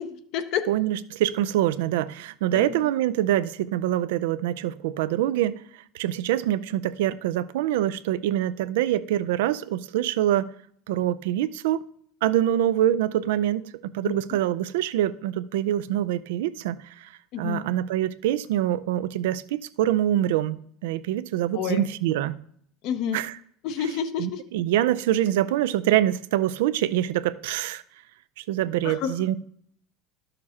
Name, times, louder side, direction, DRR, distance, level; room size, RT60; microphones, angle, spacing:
voice 1, 0.0-0.6 2.5-2.9 14.0-14.2 17.3-17.6 21.5-21.9 22.8-23.2 23.6-24.4 28.8-29.1, left 8 dB, 65° left, 0.7 m, -29 dB
voice 2, 0.7-5.6 5.9-10.5 10.9-11.9 12.2-17.1 17.4-20.6 20.8-22.4 23.1-23.4 24.2-27.8 28.4-29.4, right 12 dB, 80° right, 0.4 m, -25 dB
11.5 x 6.6 x 2.9 m
supercardioid pair, 105°, 0 cm